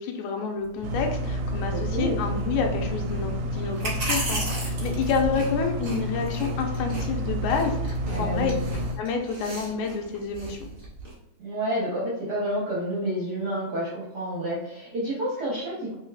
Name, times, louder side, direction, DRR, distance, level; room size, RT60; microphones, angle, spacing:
voice 1, 0.0-8.5 9.0-10.7, left 5 dB, 90° left, 4 dB, 2.0 m, -29 dB
sound 1, 0.6-11.1, right 1 dB, 40° right, 0.9 m, -36 dB
sound 2, 0.8-9.0, equal, 80° right, 1.7 m, -30 dB
voice 2, 1.7-2.2 8.1-8.6 11.4-15.9, right 1 dB, 60° right, -7 dB, 1.0 m, -29 dB
4.5 x 3.4 x 2.3 m, 0.91 s
omnidirectional pair, 3.3 m